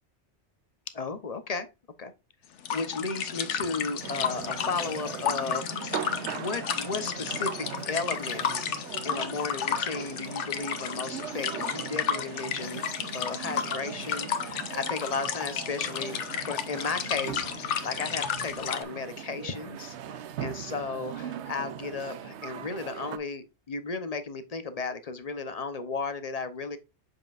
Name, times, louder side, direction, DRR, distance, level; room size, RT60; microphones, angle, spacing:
voice 1, 0.9-1.7 2.0-2.1 2.7-5.9 6.3-12.8 13.1-26.8, left 4 dB, 40° left, 0.7 m, -34 dB
sound 1, 2.6-18.8, left 8 dB, 80° left, 1.1 m, -33 dB
sound 2, 4.0-23.2, right 9 dB, 75° right, 0.9 m, -40 dB
7.0 x 5.6 x 2.4 m
omnidirectional pair, 1.2 m